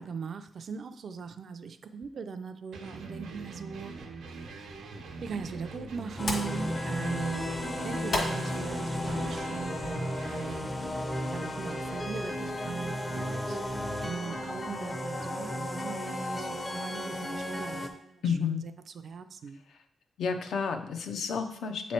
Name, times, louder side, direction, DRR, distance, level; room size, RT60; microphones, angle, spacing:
voice 1, 0.0-4.1 5.2-7.5 7.8-10.8 11.2-13.6 14.0-18.7 19.0-19.6, right 5 dB, 50° right, 9 dB, 0.4 m, -39 dB
sound 1, 2.7-10.7, right 4 dB, 90° right, 0.9 m, -43 dB
sound 2, 4.7-10.1, left 2 dB, 55° left, 1.4 m, -39 dB
sound 3, 6.2-17.9, left 1 dB, 15° left, 0.5 m, -34 dB
voice 2, 18.2-18.6 20.2-21.9, left 6 dB, 75° left, 6 dB, 0.6 m, -30 dB
8.2 x 3.1 x 4.3 m, 0.74 s
wide cardioid pair, 165°, 0 cm